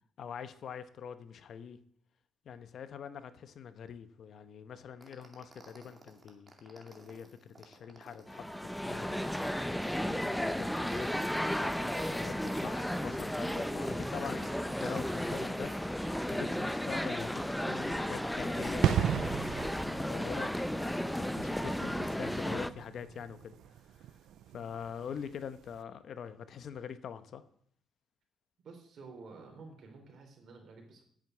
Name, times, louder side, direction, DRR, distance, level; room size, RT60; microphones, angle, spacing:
voice 1, 0.2-1.8 2.4-8.5 8.8-11.1 11.6-12.3 12.6-19.1 19.8-20.5 21.2-23.6 23.9-24.2 24.5-27.4, left 7 dB, 60° left, 12 dB, 0.8 m, -44 dB
sound 1, 5.0-9.9 10.4-12.1 12.5-15.8 16.1-16.4, right 2 dB, 20° right, 2.4 m, -55 dB
sound 2, 8.3-22.7, equal, 5° left, 0.6 m, -34 dB
sound 3, 18.8-25.3 25.6-25.8, right 11 dB, 75° right, 0.5 m, -35 dB
voice 2, 28.6-31.0, right 4 dB, 60° right, 3 dB, 3.9 m, -51 dB
8.8 x 7.8 x 8.0 m, 0.62 s
cardioid pair, 90°, 0 cm